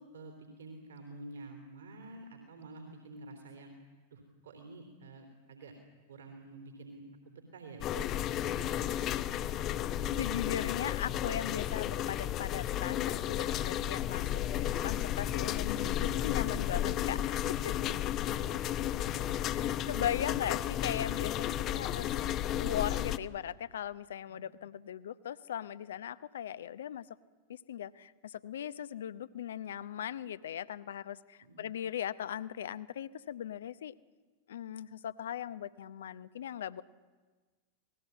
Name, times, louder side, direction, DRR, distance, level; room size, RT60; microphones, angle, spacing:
voice 1, 0.0-3.7 4.1-5.8 6.1-8.8 10.0-10.6 16.5-16.6 18.3-20.1 24.3-24.4 31.4-31.6, right 2 dB, 65° right, 4 dB, 3.4 m, -50 dB
sound 1, 7.8-23.2, left 11 dB, 35° left, 0.9 m, -33 dB
voice 2, 10.2-17.9 19.5-22.3 22.6-27.1 27.5-33.9 34.5-36.8, left 10 dB, 60° left, 16 dB, 0.8 m, -39 dB
27.0 x 19.5 x 8.3 m, 1.4 s
figure-of-eight pair, 90°, 0 cm